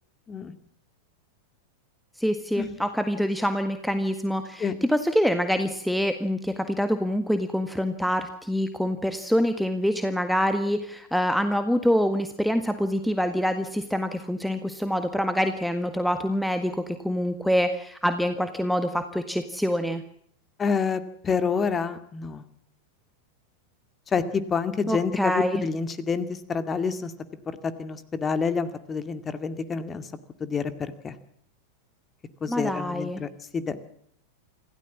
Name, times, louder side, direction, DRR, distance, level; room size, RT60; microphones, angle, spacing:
voice 1, 2.2-20.0 24.9-25.6 32.5-33.2, equal, ahead, 8 dB, 1.7 m, -26 dB
voice 2, 20.6-22.4 24.1-27.1 27.6-30.1 30.4-31.2 32.4-33.8, left 5 dB, 20° left, 11 dB, 2.3 m, -28 dB
27.0 x 16.5 x 7.4 m, 0.66 s
figure-of-eight pair, 90°, 0 cm